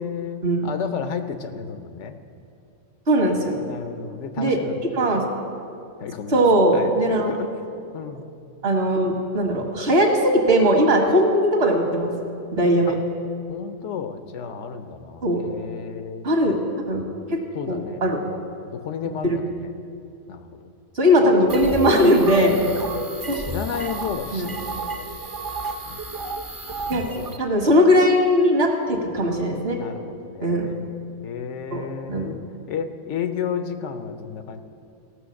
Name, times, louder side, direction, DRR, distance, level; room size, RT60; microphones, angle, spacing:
voice 1, 0.0-2.1 3.7-4.8 6.0-6.4 6.7-7.5 7.9-8.3 12.9-13.0 13.5-16.3 17.5-19.7 20.3-20.7 22.2-25.1 25.9-26.0 27.2-27.6 29.7-30.8 31.2-32.4 32.7-34.6, left 7 dB, 85° left, 9 dB, 1.1 m, -33 dB
voice 2, 3.1-3.6 4.4-4.6 4.9-5.2 6.3-7.3 8.6-12.1 12.5-13.0 15.2-15.4 16.2-16.6 16.9-17.0 17.3-17.4 17.7-18.2 19.2-19.4 21.0-22.6 23.3-23.4 24.3-24.5 26.9-27.1 27.4-29.8 30.4-30.7 31.7-32.4, equal, 60° right, 1 dB, 1.8 m, -19 dB
sound 1, 21.5-27.4, right 2 dB, 25° right, 0.5 m, -32 dB
16.0 x 6.4 x 6.4 m, 2.6 s
omnidirectional pair, 1.2 m